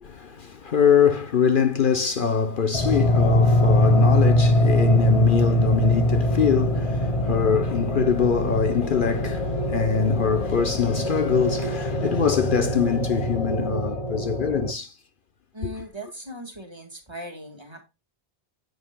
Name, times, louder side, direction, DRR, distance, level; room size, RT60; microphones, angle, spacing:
voice 1, 0.0-15.0 15.6-15.7, left 6 dB, 55° left, 0.9 m, -23 dB
sound 1, 2.7-14.7, left 1 dB, 35° left, 1.3 m, -22 dB
voice 2, 15.5-17.8, equal, 25° right, 1.9 m, -38 dB
10.5 x 7.9 x 2.2 m
omnidirectional pair, 1.1 m